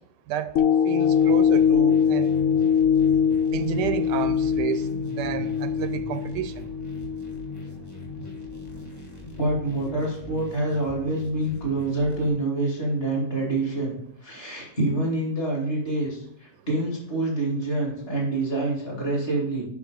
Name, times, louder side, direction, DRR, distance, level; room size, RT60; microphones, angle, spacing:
sound 1, 0.6-9.0 9.5-9.6, left 7 dB, 70° left, 0.8 m, -23 dB
voice 1, 0.8-2.3 3.5-4.9 5.2-6.7, right 10 dB, 80° right, 12 dB, 1.2 m, -30 dB
sound 2, 1.0-12.3, right 1 dB, 10° left, 1.4 m, -43 dB
voice 2, 9.4-19.7, right 2 dB, 35° left, -2 dB, 2.9 m, -26 dB
7.1 x 5.8 x 5.3 m, 0.73 s
omnidirectional pair, 1.9 m